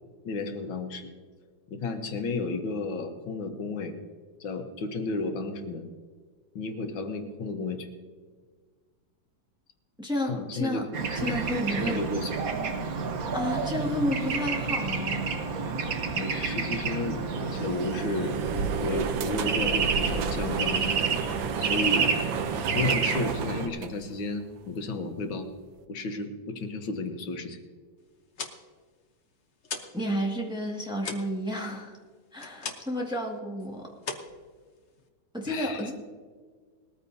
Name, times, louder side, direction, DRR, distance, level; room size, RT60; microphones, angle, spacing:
voice 1, 0.3-1.1 1.7-3.9 4.4-5.9 6.6-7.9 10.3-11.4 11.8-12.4 16.2-18.4 18.8-21.0 21.6-22.1 22.7-25.5 25.9-27.6 35.5-35.9, left 3 dB, 85° left, 5 dB, 1.9 m, -33 dB
voice 2, 10.0-10.8 11.1-12.0 13.3-15.2 29.9-32.0 32.3-33.9 35.3-35.9, equal, ahead, -2 dB, 1.7 m, -31 dB
Bird / Traffic noise roadway noise, 10.9-23.7, right 5 dB, 55° right, 1.3 m, -29 dB
sound 1, 17.2-24.5, right 7 dB, 80° right, 1.6 m, -33 dB
sound 2, 28.1-30.0 30.3-33.1 33.4-33.7 34.0-35.1, left 4 dB, 45° left, 1.1 m, -39 dB
20.0 x 14.0 x 2.8 m, 1.5 s
omnidirectional pair, 2.1 m